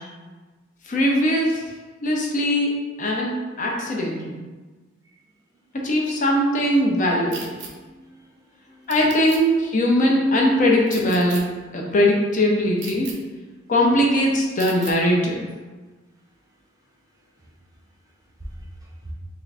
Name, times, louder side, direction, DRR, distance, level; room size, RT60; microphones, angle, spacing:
voice 1, 0.9-1.7 2.0-4.4 5.7-7.6 8.9-11.4 11.7-13.1 13.7-15.5, left 1 dB, 40° left, -1 dB, 0.5 m, -20 dB
sound 1, 7.3-7.7 8.9-9.4 10.9-11.4 12.8-13.1 14.6-14.9, right 5 dB, 70° right, 0.6 m, -36 dB
voice 2, 7.6-8.9 18.4-19.1, right 1 dB, 20° right, -3 dB, 0.5 m, -42 dB
3.6 x 2.4 x 3.3 m, 1.3 s
head